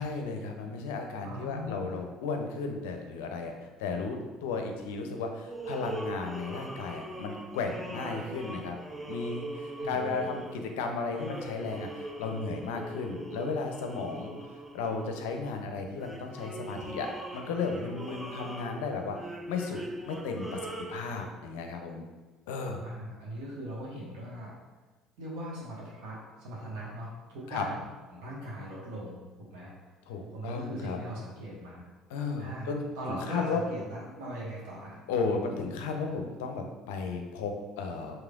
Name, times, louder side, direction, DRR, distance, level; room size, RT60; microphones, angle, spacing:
voice 1, 0.0-8.8 9.1-19.2 19.5-19.8 20.0-22.0 22.5-22.8 27.5-27.7 30.1-31.0 32.1-33.6 35.1-38.2, left 4 dB, 70° left, 4 dB, 0.5 m, -34 dB
voice 2, 1.2-2.0 9.8-10.3 22.8-24.5 25.2-27.8 28.1-29.7 30.3-31.9 32.4-32.7 32.9-34.9, right 1 dB, 65° right, -5 dB, 1.3 m, -40 dB
sound 1, 5.5-15.5 16.0-21.3, right 1 dB, 10° right, 0.5 m, -41 dB
4.8 x 3.1 x 2.4 m, 1.3 s
hypercardioid pair, 60°, 0 cm